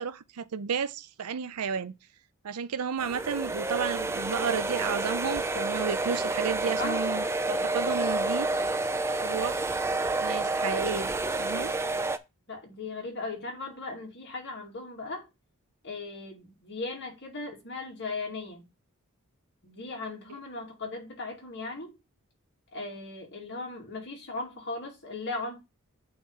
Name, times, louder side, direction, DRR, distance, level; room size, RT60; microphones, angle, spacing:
voice 1, 0.0-2.0 2.4-8.5 9.2-9.8 10.2-11.1 11.4-11.7, right 6 dB, 80° right, 0.5 m, -32 dB
sound 1, 3.0-12.2, right 2 dB, 10° right, 0.4 m, -29 dB
voice 2, 12.5-15.3 15.8-18.7 19.6-22.0 22.7-25.6, left 3 dB, 55° left, 2.3 m, -37 dB
8.5 x 3.1 x 5.4 m
head